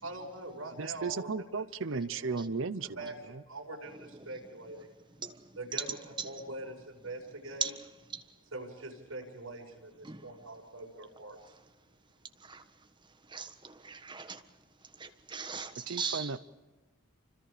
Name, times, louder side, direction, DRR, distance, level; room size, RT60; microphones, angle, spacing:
voice 1, 0.0-2.5 2.8-4.9 5.6-7.8 8.5-11.4, right 2 dB, 80° right, 5.8 m, -44 dB
voice 2, 0.8-3.4 15.9-16.4, right 4 dB, 65° right, 0.7 m, -35 dB
voice 3, 13.3-14.4 15.0-16.3, right 5 dB, 25° right, 1.5 m, -38 dB
29.0 x 25.5 x 5.1 m
head